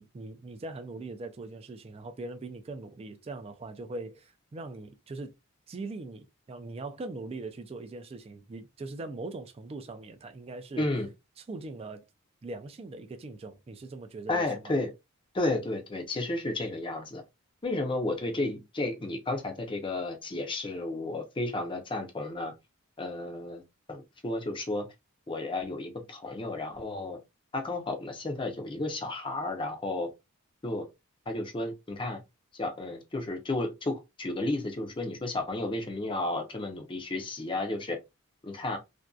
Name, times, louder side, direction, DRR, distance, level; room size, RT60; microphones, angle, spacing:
voice 1, 0.0-5.3 5.7-10.9 11.5-12.0 12.4-14.8, right 3 dB, 25° right, 0.3 m, -41 dB
voice 2, 10.8-11.1 14.3-14.9 15.3-17.2 17.6-22.5 23.0-23.6 23.9-24.9 25.3-27.2 27.5-30.1 30.6-30.9 31.3-32.2 32.5-38.0 38.4-38.8, left 2 dB, 25° left, 0.5 m, -32 dB
2.6 x 2.2 x 2.2 m
head